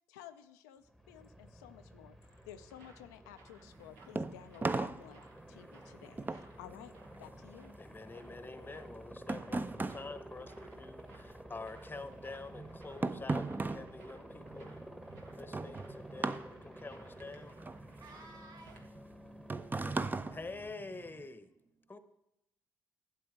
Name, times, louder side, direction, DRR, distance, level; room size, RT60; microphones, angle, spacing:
voice 1, 0.1-2.2 2.5-6.9 7.2-7.7, left 11 dB, 80° left, 8 dB, 0.4 m, -53 dB
Aircraft, 0.8-20.7, equal, 5° right, 1.0 m, -52 dB
sound 1, 1.8-18.9, right 3 dB, 80° right, 1.0 m, -63 dB
sound 2, 3.7-11.3 11.6-21.3, right 3 dB, 20° right, 0.5 m, -39 dB
voice 2, 7.8-14.7 15.3-17.6 20.3-21.5 21.9-22.0, left 3 dB, 25° left, 12 dB, 0.8 m, -47 dB
voice 3, 17.9-18.9 21.8-21.9, right 2 dB, 50° right, 3 dB, 0.9 m, -57 dB
12.0 x 7.7 x 3.5 m, 0.86 s
hypercardioid pair, 40°, 8 cm